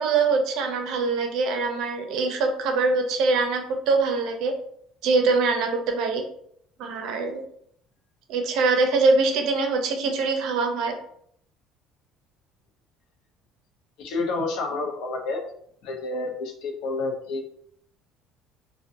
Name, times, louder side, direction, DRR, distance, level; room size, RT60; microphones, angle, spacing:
voice 1, 0.0-4.5 5.0-6.2 6.8-7.4 8.3-11.0, right 3 dB, 65° right, 4 dB, 0.5 m, -23 dB
voice 2, 14.0-15.4 15.8-17.5, left 3 dB, 65° left, 3 dB, 0.5 m, -29 dB
2.5 x 2.1 x 2.6 m, 0.66 s
cardioid pair, 150°, 0 cm